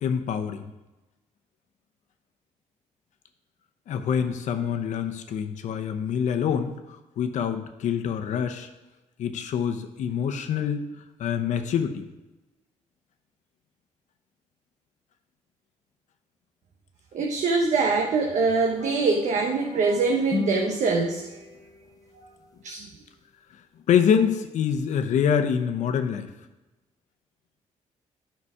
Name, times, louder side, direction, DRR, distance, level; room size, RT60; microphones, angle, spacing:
voice 1, 0.0-0.6 3.9-8.7 9.2-10.9 11.2-12.1 23.9-26.3, left 7 dB, 70° left, 7 dB, 0.9 m, -25 dB
voice 2, 17.1-21.4 22.1-22.2 22.6-22.9, right 4 dB, 70° right, 1 dB, 1.0 m, -24 dB
sound 1, 18.7-22.1, left 4 dB, 30° left, 0.7 m, -36 dB
9.9 x 5.8 x 4.9 m, 1.1 s
cardioid pair, 100°, 13 cm